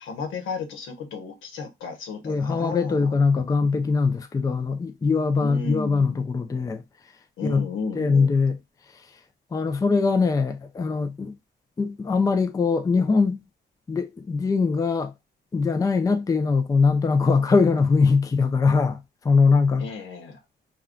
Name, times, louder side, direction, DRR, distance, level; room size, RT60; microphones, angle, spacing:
voice 1, 0.0-3.1 5.4-6.4 7.4-8.4 19.8-20.4, left 4 dB, 80° left, 0.9 m, -34 dB
voice 2, 2.2-6.8 7.4-7.7 7.9-8.6 9.5-11.4 11.8-13.4 13.9-15.1 15.5-19.9, left 4 dB, 20° left, 0.4 m, -22 dB
2.3 x 2.3 x 3.6 m
cardioid pair, 90°, 20 cm